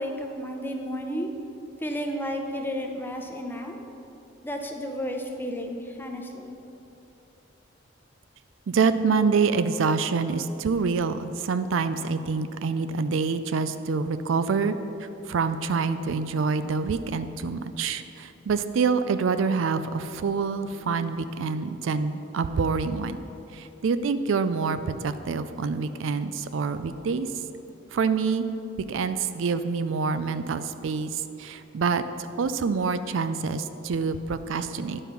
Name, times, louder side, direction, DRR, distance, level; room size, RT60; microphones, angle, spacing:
voice 1, 0.0-1.3 1.8-3.8 4.4-6.5, equal, 10° left, 3 dB, 0.7 m, -32 dB
voice 2, 8.7-14.8 15.3-23.2 23.5-27.3 27.9-28.5 28.9-32.0 32.4-35.0, right 5 dB, 75° right, 11 dB, 0.4 m, -26 dB
10.0 x 5.5 x 5.9 m, 2.9 s
head